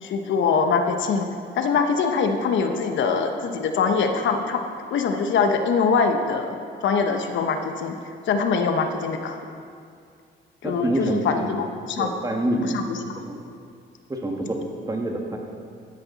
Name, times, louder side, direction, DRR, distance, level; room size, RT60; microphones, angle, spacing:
voice 1, 0.0-1.3 1.5-4.6 4.9-6.6 6.8-8.0 8.3-9.3 10.6-12.1 12.6-13.2, left 5 dB, 70° left, 5 dB, 1.0 m, -23 dB
voice 2, 10.6-11.5 12.0-12.7 13.3-13.4 14.1-14.6 14.9-15.4, right 1 dB, 20° right, 1 dB, 1.5 m, -26 dB
13.0 x 9.6 x 4.1 m, 2.3 s
cardioid pair, 90°, 20 cm